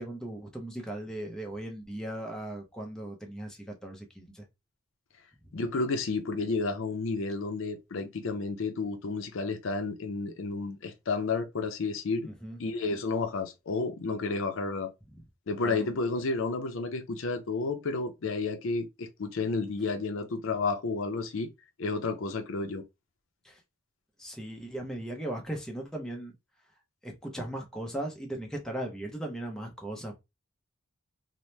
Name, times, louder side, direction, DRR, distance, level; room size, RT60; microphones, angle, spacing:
voice 1, 0.0-4.4 12.2-12.6 15.6-15.9 23.4-23.6 24.2-26.3 27.0-30.1, right 1 dB, 5° left, 0.5 m, -38 dB
voice 2, 5.5-12.3 12.6-14.9 15.5-21.5 21.8-22.8, left 3 dB, 65° left, 0.5 m, -31 dB
2.8 x 2.0 x 3.1 m
head